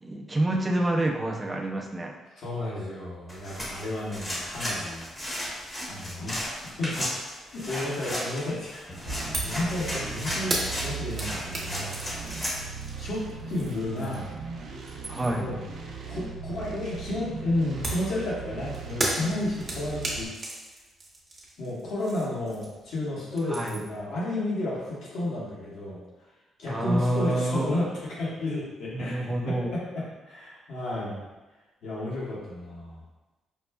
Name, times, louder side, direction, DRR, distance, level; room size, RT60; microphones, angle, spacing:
voice 1, 0.0-2.1 10.0-10.2 15.1-15.5 23.5-23.8 26.7-27.7 28.9-29.7, right 1 dB, 20° right, 1 dB, 0.5 m, -28 dB
voice 2, 2.4-5.0 5.9-6.3 6.8-7.1 7.5-8.8 9.4-11.9 13.0-13.2 13.5-14.3 15.3-15.6 16.1-20.3 21.6-26.0 26.6-29.1 29.5-31.2 31.8-33.0, left 1 dB, 70° left, -7 dB, 1.2 m, -32 dB
sound 1, 3.3-12.6, equal, 25° left, 1.0 m, -34 dB
sound 2, 9.1-20.3, right 5 dB, 70° right, 0.5 m, -39 dB
sound 3, 9.3-9.6 9.9-14.4 14.7-15.5 17.8-22.9 23.2-24.0, right 1 dB, 35° right, 0.9 m, -35 dB
5.1 x 2.1 x 2.2 m, 1.1 s
cardioid pair, 90°, 0 cm